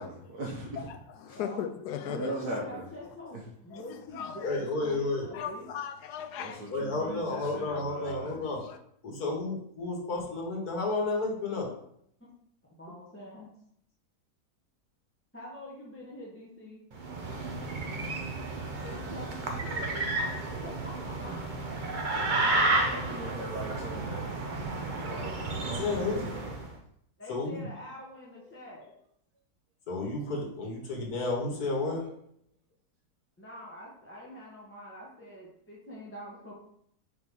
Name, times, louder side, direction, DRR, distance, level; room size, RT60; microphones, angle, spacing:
voice 1, 0.0-0.9 1.3-1.4 2.0-2.8 3.3-3.4 6.4-8.4 22.1-24.4 24.8-26.5, right 1 dB, 75° right, 1.8 m, -39 dB
voice 2, 0.8-2.3 3.7-4.6 5.3-6.7 7.4-7.8 8.6-8.8, left 8 dB, 90° left, 1.2 m, -38 dB
voice 3, 1.3-1.7 2.1-5.7 12.8-13.5 15.3-16.8 18.8-21.5 27.2-28.9 33.4-36.5, left 1 dB, 10° left, 1.4 m, -45 dB
voice 4, 4.4-5.3 6.7-8.6 9.0-11.7 25.7-26.3 27.3-27.7 29.9-32.1, left 3 dB, 75° left, 1.9 m, -31 dB
sound 1, 16.9-26.7, right 2 dB, 40° right, 0.8 m, -32 dB
4.7 x 4.6 x 5.4 m
omnidirectional pair, 1.6 m